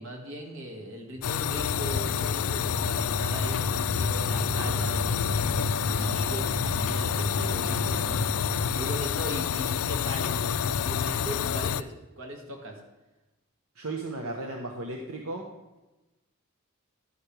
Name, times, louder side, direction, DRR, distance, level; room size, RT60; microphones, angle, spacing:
voice 1, 0.0-12.8, right 1 dB, 65° right, 1 dB, 2.1 m, -39 dB
sound 1, 1.1-8.9, right 1 dB, 20° right, 2.3 m, -35 dB
sound 2, 1.2-11.8, left 8 dB, 85° left, 0.4 m, -28 dB
voice 2, 13.8-15.5, right 2 dB, 80° right, 1 dB, 1.2 m, -35 dB
11.5 x 11.0 x 3.4 m, 1.1 s
head